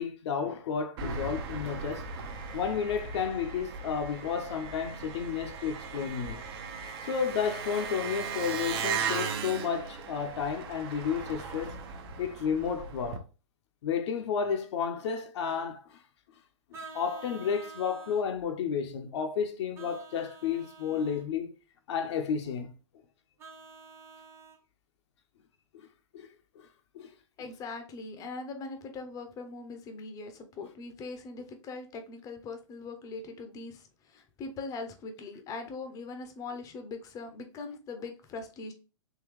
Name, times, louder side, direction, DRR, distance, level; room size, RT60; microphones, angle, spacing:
voice 1, 0.0-2.1 2.5-6.4 7.0-11.8 12.2-13.2 13.8-16.0 16.9-21.5 21.9-22.7 25.7-25.9 26.1-26.3 26.6-26.7 26.9-27.1, left 7 dB, 60° left, 0.7 m, -32 dB
Engine, 1.0-13.2, right 6 dB, 50° right, 0.7 m, -37 dB
Vehicle horn car horn honking, 16.7-18.3 19.7-21.2 23.4-24.6, right 4 dB, 15° right, 0.7 m, -48 dB
voice 2, 27.4-38.7, left 3 dB, 20° left, 0.6 m, -41 dB
3.8 x 2.9 x 3.0 m
hypercardioid pair, 115°, 16 cm